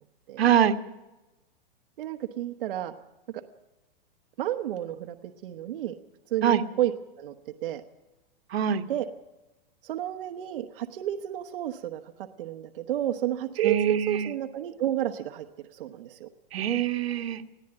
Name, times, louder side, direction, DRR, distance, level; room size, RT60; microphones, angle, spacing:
voice 1, 0.4-0.8 6.4-6.6 8.5-8.8 13.6-14.3 16.5-17.4, right 9 dB, 85° right, 8 dB, 1.6 m, -24 dB
voice 2, 2.0-2.9 3.3-3.4 4.4-5.9 6.3-6.9 7.2-7.3 7.6-7.8 8.9-9.1 9.8-12.1 12.4-15.5 15.7-16.3, right 12 dB, 60° right, 6 dB, 1.2 m, -31 dB
20.5 x 14.0 x 8.9 m, 1.0 s
supercardioid pair, 170°, 30 cm